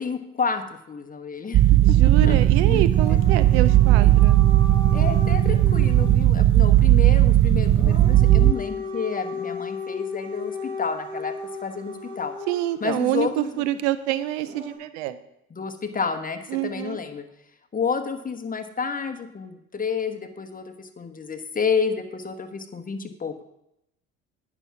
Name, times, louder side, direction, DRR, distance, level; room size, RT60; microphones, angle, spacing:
voice 1, 0.0-1.6 2.2-2.4 2.7-2.9 4.0-4.1 4.9-11.3 11.6-12.3 12.8-13.6 15.5-17.2 17.7-23.4, left 5 dB, 25° left, 8 dB, 1.3 m, -30 dB
sound 1, 1.5-8.5, right 13 dB, 40° right, 0.5 m, -17 dB
voice 2, 1.8-4.4 12.5-15.2 16.5-17.0, right 14 dB, 85° right, 13 dB, 0.7 m, -27 dB
Dog / Siren, 2.9-6.2 7.6-12.8 14.4-14.8, left 3 dB, 15° right, 3.4 m, -35 dB
9.7 x 6.1 x 5.8 m, 0.81 s
supercardioid pair, 80°, 32 cm